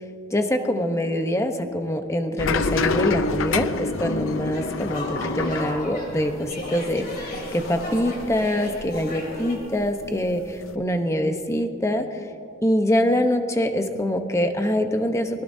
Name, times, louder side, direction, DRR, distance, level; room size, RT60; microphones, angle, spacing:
voice 1, 0.3-12.2 12.6-15.4, left 1 dB, 15° left, 6 dB, 0.9 m, -24 dB
sound 1, 2.4-9.1 9.4-10.8, left 4 dB, 70° left, 0.6 m, -28 dB
sound 2, 4.5-9.6, left 2 dB, 45° left, 3.6 m, -35 dB
24.0 x 20.0 x 2.7 m, 2.6 s
head